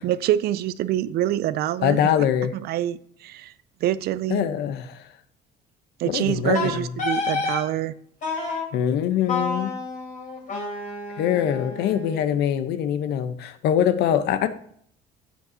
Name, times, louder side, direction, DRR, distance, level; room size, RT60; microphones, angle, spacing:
voice 1, 0.0-2.0 2.5-3.5 3.8-4.5 6.0-7.9, right 13 dB, 70° right, 0.5 m, -25 dB
voice 2, 1.8-2.5 4.3-5.1 6.0-6.9 8.7-9.7 11.2-14.5, left 9 dB, 80° left, 0.9 m, -23 dB
Wind instrument woodwind instrument, 6.5-7.6 8.2-8.7 9.3-12.3, left 3 dB, 50° left, 3.6 m, -29 dB
10.5 x 8.3 x 2.8 m
cardioid pair, 110°, 17 cm